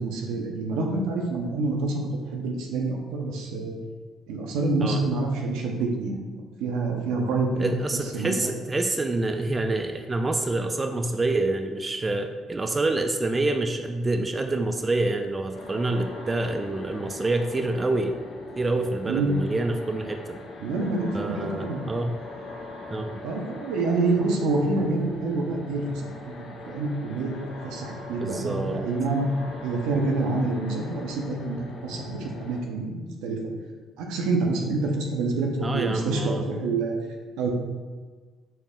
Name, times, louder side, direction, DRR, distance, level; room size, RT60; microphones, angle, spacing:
voice 1, 0.0-2.0 2.3-3.7 4.3-7.7 8.1-8.4 19.1-19.3 20.6-21.8 23.2-27.3 27.6-29.2 29.6-31.6 31.8-33.4 34.0-37.0 37.4-37.5, right 3 dB, 80° right, 1 dB, 0.5 m, -27 dB
voice 2, 7.6-18.1 18.6-20.4 21.1-22.1 22.9-23.2 28.2-28.9 35.6-36.4, right 2 dB, 25° right, 5 dB, 0.3 m, -27 dB
sound 1, 15.5-32.6, left 2 dB, 60° left, 0.5 m, -41 dB
4.1 x 2.1 x 3.6 m, 1.4 s
supercardioid pair, 65°, 0 cm